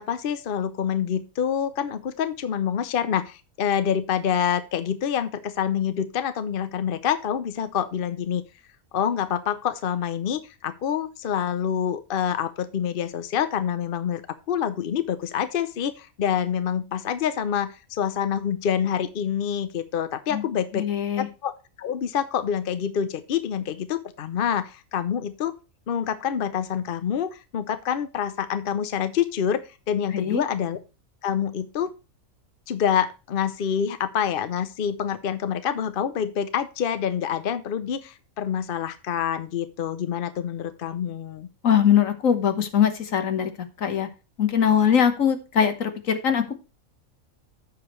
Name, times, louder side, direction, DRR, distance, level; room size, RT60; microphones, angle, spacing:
voice 1, 0.0-8.4 8.9-14.2 14.5-20.9 21.2-25.5 25.9-30.8 31.2-31.9 32.7-41.5, left 8 dB, 50° left, 12 dB, 0.7 m, -27 dB
voice 2, 20.7-21.3 30.1-30.4 41.6-43.5 43.8-44.1 44.4-46.6, left 8 dB, 70° left, 7 dB, 1.6 m, -21 dB
14.5 x 4.9 x 3.1 m, 0.30 s
omnidirectional pair, 1.4 m